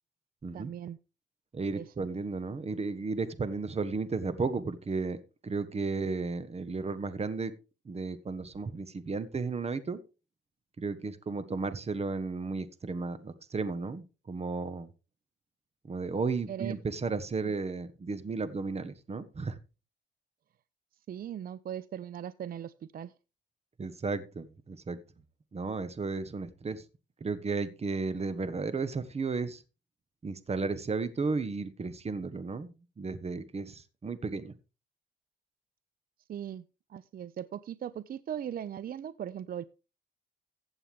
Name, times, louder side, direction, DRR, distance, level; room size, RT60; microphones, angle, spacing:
voice 1, 0.5-1.0 1.7-2.1 16.5-16.8 17.4-17.5 21.1-23.1 36.3-36.6 36.9-39.6, right 10 dB, 50° right, 17 dB, 0.5 m, -39 dB
voice 2, 1.5-5.2 5.4-7.5 7.8-10.0 10.8-14.9 15.9-19.6 23.8-25.0 25.5-26.8 27.2-29.6 30.2-34.5, right 4 dB, 30° right, 13 dB, 1.4 m, -34 dB
15.0 x 8.1 x 3.5 m, 0.32 s
cardioid pair, 90°, 20 cm